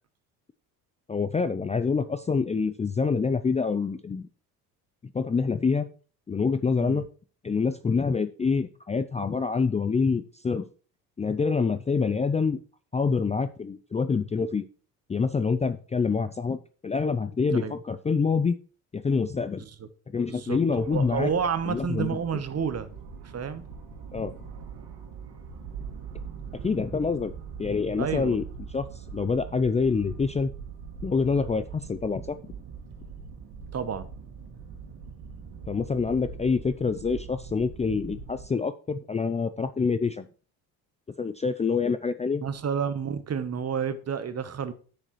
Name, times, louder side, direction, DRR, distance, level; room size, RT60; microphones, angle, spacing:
voice 1, 1.1-4.3 5.1-5.9 6.3-7.1 7.4-10.7 11.2-12.6 12.9-14.6 15.1-16.6 16.8-18.6 18.9-19.6 20.1-21.3 21.7-22.2 24.1-24.3 26.6-27.3 27.6-28.4 28.7-28.8 29.1-30.5 31.0-32.4 35.7-40.2 41.2-42.4, left 5 dB, 15° left, 0.5 m, -26 dB
voice 2, 20.3-20.6 20.9-22.9 23.3-23.7 28.0-28.4 33.7-34.1 42.4-44.7, right 7 dB, 35° right, 1.1 m, -30 dB
sound 1, 20.7-38.5, right 6 dB, 65° right, 2.1 m, -42 dB
9.9 x 6.7 x 3.1 m
hypercardioid pair, 60°, 43 cm